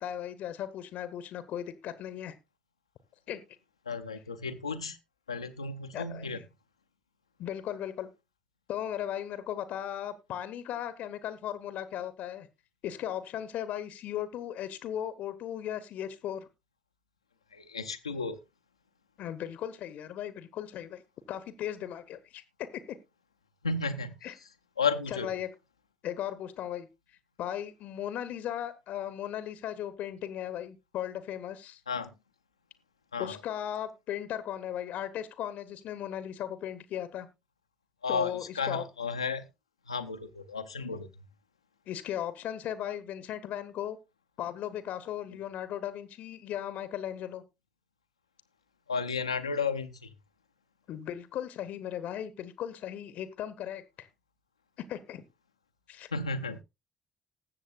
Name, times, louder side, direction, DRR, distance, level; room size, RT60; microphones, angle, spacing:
voice 1, 0.0-2.3 3.3-3.4 5.9-6.4 7.4-8.1 8.7-12.5 12.8-16.5 19.2-21.0 21.3-22.4 22.7-23.0 24.2-24.3 25.1-25.5 26.0-26.9 27.4-31.8 33.2-37.3 38.1-38.8 41.9-44.0 44.4-47.4 50.9-54.1 54.9-55.2 55.9-56.1, left 10 dB, 60° left, 0.8 m, -37 dB
voice 2, 3.9-5.0 5.3-6.4 17.5-18.4 23.6-24.2 24.8-25.3 31.9-32.1 33.1-33.4 38.0-39.5 39.9-41.1 48.9-50.1 56.1-56.6, left 4 dB, 85° left, 0.6 m, -33 dB
19.5 x 7.4 x 2.4 m
figure-of-eight pair, 45°, 3 cm